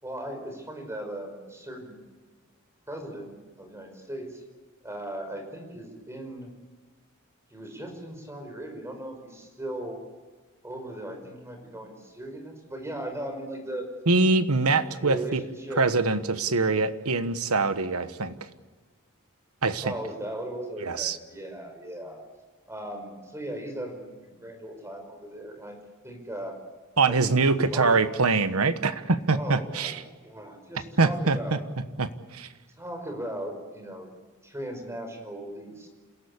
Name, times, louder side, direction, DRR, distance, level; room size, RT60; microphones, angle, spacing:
voice 1, 0.0-2.0 2.9-4.4 4.8-6.5 7.5-10.0 10.6-13.9 15.0-15.8 19.8-22.2 22.7-25.8 26.0-26.5 27.1-27.3 27.7-28.0 29.3-29.9 30.2-31.6 32.8-34.1 34.4-35.9, right 1 dB, 15° right, 3 dB, 5.3 m, -37 dB
voice 2, 14.1-15.4 15.8-18.5 19.6-19.9 20.8-21.2 27.0-30.0 31.0-31.6 32.0-32.5, right 3 dB, 85° right, 11 dB, 1.3 m, -24 dB
28.0 x 17.5 x 8.5 m, 1.3 s
head